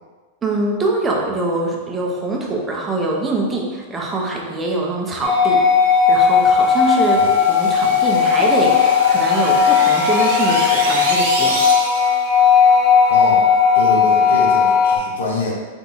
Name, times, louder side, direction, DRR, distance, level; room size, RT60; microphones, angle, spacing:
voice 1, 0.4-5.6 6.1-11.6, right 2 dB, 20° right, -1 dB, 0.8 m, -23 dB
sound 1, 5.2-15.0, left 6 dB, 20° left, 0.8 m, -15 dB
sound 2, 6.3-12.3, right 2 dB, 65° right, 0.9 m, -28 dB
voice 2, 13.1-13.5 13.7-15.5, left 2 dB, 80° left, -1 dB, 1.0 m, -25 dB
3.9 x 3.5 x 2.9 m, 1.3 s
hypercardioid pair, 110°, 0 cm